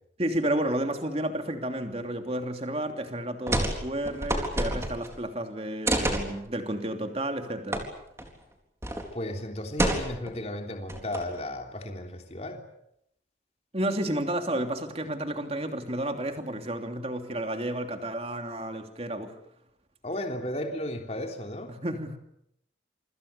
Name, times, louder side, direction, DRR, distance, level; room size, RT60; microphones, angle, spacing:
voice 1, 0.2-7.9 13.7-19.3 21.7-22.2, right 1 dB, 35° right, 5 dB, 3.0 m, -31 dB
sound 1, 3.5-3.8 4.0-5.1 5.8-6.3 7.7-7.8 8.2-8.3 8.8-9.1 9.8-10.3 10.9-11.4, right 1 dB, 15° right, 4.1 m, -28 dB
voice 2, 9.1-12.6 20.0-21.7, left 1 dB, 35° left, 3 dB, 3.4 m, -34 dB
27.5 x 25.5 x 6.9 m, 0.76 s
head